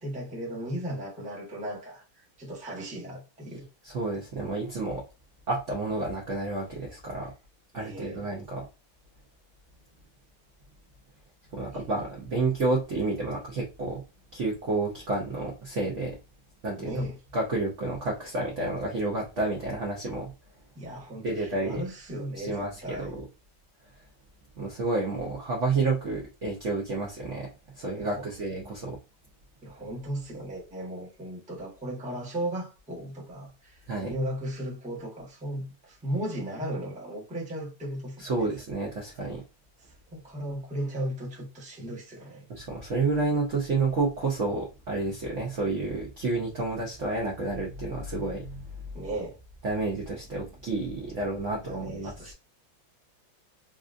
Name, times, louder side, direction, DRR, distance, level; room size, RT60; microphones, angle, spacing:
voice 1, 0.0-3.7 7.7-8.3 11.7-11.8 16.8-17.2 20.8-23.1 28.0-28.5 29.6-38.5 40.1-42.5 48.9-49.4 51.6-52.3, right 1 dB, 5° right, 0.6 m, -36 dB
voice 2, 3.8-5.0 5.5-7.3 7.7-8.7 11.5-14.0 14.3-16.2 16.6-16.9 17.3-20.3 21.2-21.8 22.4-23.2 24.6-27.5 27.7-29.0 33.9-34.1 38.2-39.4 42.5-48.6 49.6-52.3, right 3 dB, 60° right, 0.8 m, -30 dB
3.7 x 2.4 x 2.5 m
omnidirectional pair, 2.2 m